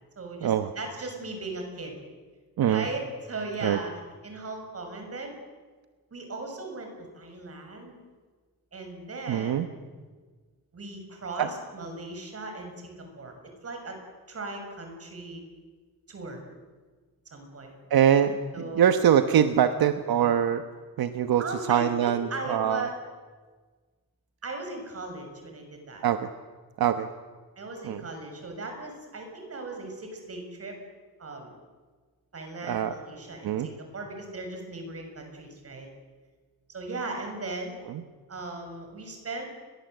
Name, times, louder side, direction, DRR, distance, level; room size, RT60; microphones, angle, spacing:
voice 1, 0.1-2.0 2.6-3.9 4.2-5.3 6.1-8.0 8.7-9.7 10.7-13.3 13.6-14.0 14.3-15.4 16.1-16.4 17.3-17.8 18.5-19.0 21.4-22.9 24.4-26.0 27.6-30.7 31.2-31.5 32.3-35.9 36.7-37.8 38.3-39.5, right 3 dB, 40° right, 4 dB, 6.6 m, -37 dB
voice 2, 9.3-9.7 11.4-11.5 17.9-20.6 21.0-22.8 26.0-26.3 26.8-27.1 27.8-28.0 32.6-33.0 33.4-33.7 37.9-38.0, right 9 dB, 80° right, 9 dB, 1.3 m, -23 dB
30.0 x 22.5 x 8.0 m, 1.4 s
wide cardioid pair, 155°, 36 cm